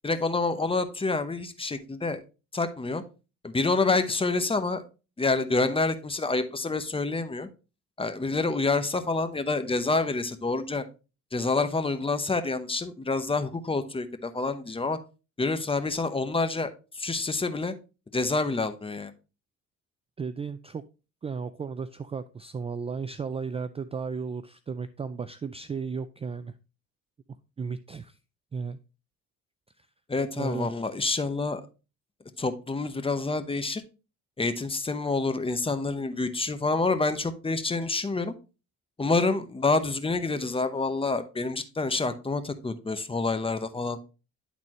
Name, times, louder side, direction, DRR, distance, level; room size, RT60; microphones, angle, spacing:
voice 1, 0.0-2.2 2.5-3.0 3.4-4.8 5.2-7.5 8.0-10.8 11.3-15.0 15.4-16.7 16.9-17.7 18.1-19.1 30.1-31.6 32.4-33.8 34.4-38.3 39.0-44.0, left 3 dB, 20° left, 10 dB, 0.9 m, -27 dB
voice 2, 20.2-20.8 21.2-26.5 27.6-28.2 28.5-28.8 30.4-30.7, right 5 dB, 20° right, 13 dB, 0.3 m, -34 dB
10.5 x 4.1 x 3.0 m, 0.31 s
cardioid pair, 90°, 30 cm